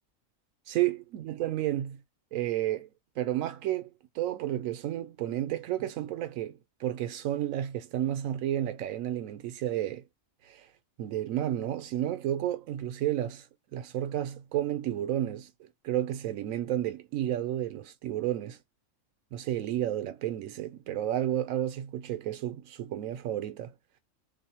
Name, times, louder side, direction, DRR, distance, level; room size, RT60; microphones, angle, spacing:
voice 1, 0.7-2.0 2.3-2.9 3.2-3.9 4.1-10.0 10.4-10.7 11.0-13.4 13.7-18.6 19.3-23.7, right 12 dB, 90° right, 1.0 m, -31 dB
2.8 x 2.0 x 2.7 m
omnidirectional pair, 1.4 m